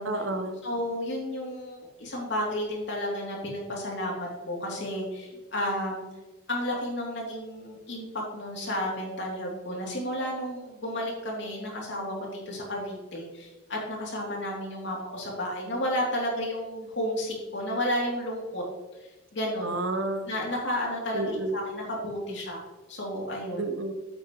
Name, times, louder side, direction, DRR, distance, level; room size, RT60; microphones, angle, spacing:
voice 1, 0.0-0.6 19.6-20.3 21.1-21.6 23.6-23.9, right 2 dB, 80° right, 7 dB, 1.0 m, -30 dB
voice 2, 0.6-6.0 6.5-8.1 8.3-18.6 19.0-19.7 20.3-22.6 22.9-23.7, equal, 65° left, -3 dB, 3.1 m, -32 dB
8.5 x 8.5 x 3.1 m, 1.2 s
head